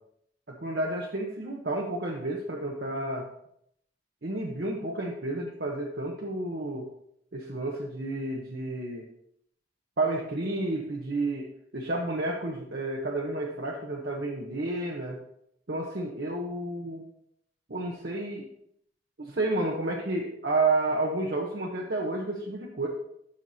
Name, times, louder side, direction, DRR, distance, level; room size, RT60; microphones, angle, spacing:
voice 1, 0.5-3.2 4.2-6.8 7.3-9.1 10.0-11.5 11.7-15.2 15.7-17.0 17.7-18.4 19.2-22.9, right 2 dB, 60° right, -1 dB, 0.9 m, -31 dB
12.5 x 5.9 x 2.7 m, 0.73 s
head